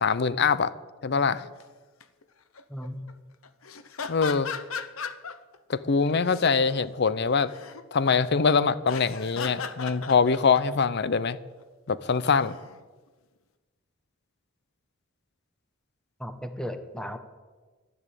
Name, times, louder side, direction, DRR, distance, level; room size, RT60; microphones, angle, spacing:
voice 1, 0.0-0.7 1.0-1.4 4.1-4.5 5.7-7.5 7.9-11.4 11.9-12.6, left 5 dB, 55° left, 17 dB, 0.6 m, -23 dB
sound 1, 1.4-1.6 2.0-2.2 2.5-3.1 3.4-5.6 6.0-6.7 7.1-7.8 8.8-10.8 12.2-12.8, left 6 dB, 85° left, 0.9 m, -37 dB
voice 2, 2.7-3.0 16.2-17.2, equal, 5° left, 8 dB, 1.1 m, -35 dB
12.0 x 11.0 x 8.3 m, 1.3 s
head